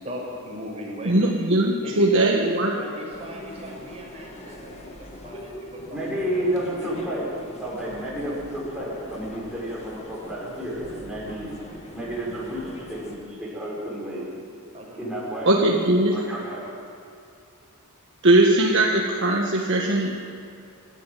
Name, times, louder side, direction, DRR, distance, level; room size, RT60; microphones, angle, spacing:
voice 1, 0.0-1.5 1.8-6.0 6.8-7.0 14.7-15.1, equal, 30° right, -3 dB, 5.6 m, -38 dB
voice 2, 1.0-2.7 15.4-16.2 18.2-20.2, right 1 dB, 60° right, -1 dB, 1.5 m, -20 dB
sound 1, 3.1-13.2, left 1 dB, 30° left, 2.1 m, -42 dB
voice 3, 5.9-7.3 7.6-11.5 11.9-14.2 15.0-15.5 16.1-16.6, right 1 dB, 5° right, -7 dB, 6.6 m, -31 dB
23.0 x 13.0 x 9.2 m, 2.5 s
head